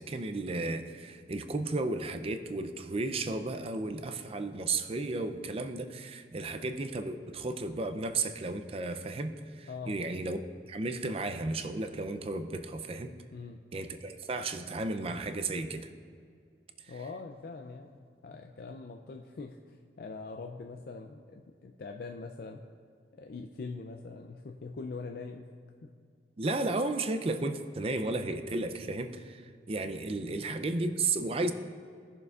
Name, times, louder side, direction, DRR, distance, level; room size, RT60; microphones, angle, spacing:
voice 1, 0.0-10.4 10.7-13.1 13.7-15.9 26.4-31.5, right 2 dB, 35° right, 8 dB, 0.4 m, -33 dB
voice 2, 9.7-10.0 13.3-13.6 16.9-22.6 23.1-25.5 25.8-25.9 30.2-30.4, left 4 dB, 55° left, 3 dB, 0.4 m, -43 dB
17.5 x 6.7 x 2.4 m, 2.2 s
head